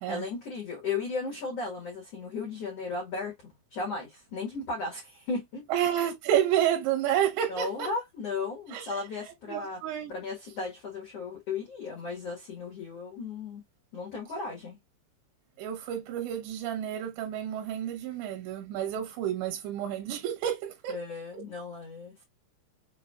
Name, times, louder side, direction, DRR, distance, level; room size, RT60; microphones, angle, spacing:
voice 1, 0.1-5.7 7.5-9.8 10.1-13.6 13.9-14.8 20.9-22.2, left 4 dB, 80° left, 1.4 m, -35 dB
voice 2, 5.7-7.9 8.7-8.9 9.5-10.1 15.6-21.0 21.3-21.4, right 10 dB, 75° right, 3.1 m, -30 dB
7.1 x 2.7 x 2.4 m
omnidirectional pair, 5.5 m